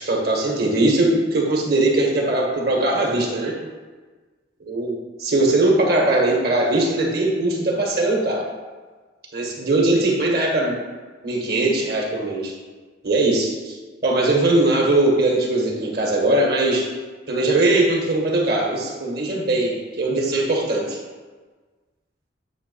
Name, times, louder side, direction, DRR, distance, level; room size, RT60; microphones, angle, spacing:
voice 1, 0.1-3.5 4.6-8.5 9.3-10.8 11.2-12.5 13.0-13.8 14.0-16.9 17.3-21.0, right 2 dB, 55° right, -1 dB, 1.5 m, -20 dB
8.4 x 3.3 x 5.5 m, 1.4 s
head